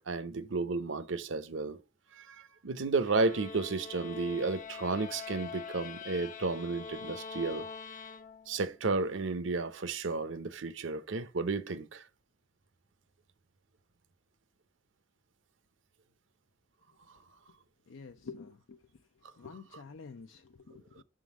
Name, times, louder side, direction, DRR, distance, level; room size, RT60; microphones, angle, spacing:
voice 1, 0.1-1.8 2.1-7.7 8.5-12.0 19.7-19.8, right 3 dB, 70° right, 0.7 m, -33 dB
sound 1, 3.0-8.7, left 5 dB, 45° left, 0.6 m, -44 dB
voice 2, 17.9-18.8 19.4-21.0, left 4 dB, 80° left, 0.5 m, -48 dB
6.1 x 3.7 x 5.9 m
head